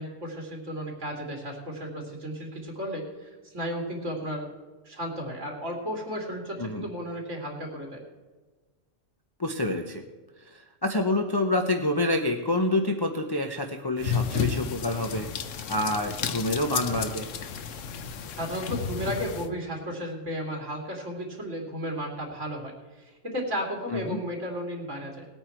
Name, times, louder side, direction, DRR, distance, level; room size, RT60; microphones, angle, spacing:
voice 1, 0.0-4.5 4.8-8.0 18.4-25.3, equal, 75° right, 0 dB, 3.3 m, -34 dB
voice 2, 9.4-10.0 10.5-15.3 15.7-17.3 23.9-24.2, left 2 dB, 25° left, 4 dB, 0.7 m, -27 dB
sound 1, 14.0-19.5, left 7 dB, 80° left, 1.2 m, -32 dB
19.0 x 8.7 x 4.5 m, 1.3 s
omnidirectional pair, 1.3 m